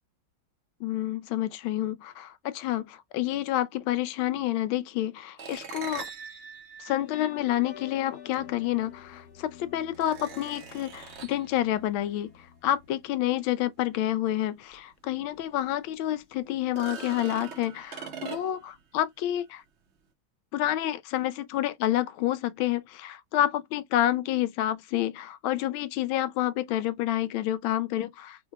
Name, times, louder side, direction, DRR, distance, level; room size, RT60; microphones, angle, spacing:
voice 1, 0.8-6.1 6.8-19.6 20.5-28.5, left 13 dB, 90° left, 1.4 m, -29 dB
sound 1, 5.4-7.9 9.1-9.2 9.9-11.5 14.8-14.9 15.3-15.4 16.6-18.8, right 6 dB, 55° right, 0.7 m, -42 dB
sound 2, 6.9-14.1, left 10 dB, 75° left, 0.9 m, -49 dB
3.7 x 2.2 x 4.5 m
omnidirectional pair, 2.1 m